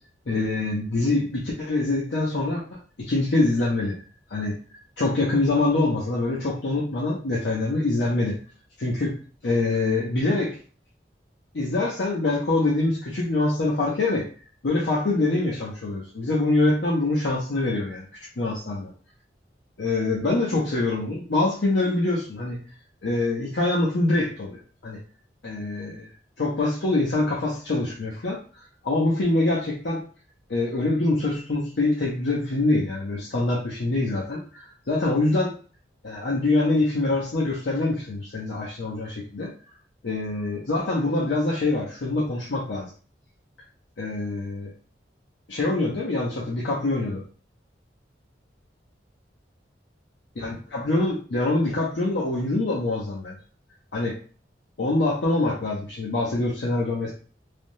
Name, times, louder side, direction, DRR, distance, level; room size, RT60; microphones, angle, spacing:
voice 1, 0.3-2.6 3.0-4.0 4.3-8.3 8.8-10.6 11.5-14.2 14.6-18.1 18.4-18.9 19.8-22.6 23.0-25.0 25.4-26.1 26.4-30.0 30.5-35.5 36.0-39.5 40.0-42.9 44.0-44.7 45.5-47.2 50.4-53.3 53.9-54.2 54.8-57.1, left 2 dB, 75° left, -4 dB, 0.7 m, -25 dB
3.3 x 2.0 x 2.6 m, 0.39 s
head